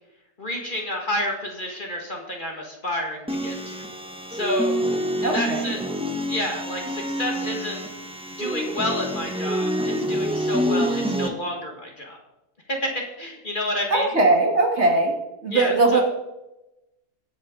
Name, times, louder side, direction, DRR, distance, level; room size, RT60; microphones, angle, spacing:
voice 1, 0.4-3.8 4.3-4.7 5.2-5.8 6.3-7.8 8.4-12.2 12.7-14.1 15.5-16.0, left 1 dB, 35° left, 1 dB, 1.7 m, -29 dB
sound 1, 3.3-11.3, equal, 5° right, 0.8 m, -27 dB
voice 2, 5.2-5.7 13.9-15.1 15.4-16.0, right 2 dB, 45° right, 1 dB, 1.9 m, -20 dB
18.5 x 7.9 x 3.8 m, 0.96 s
omnidirectional pair, 1.6 m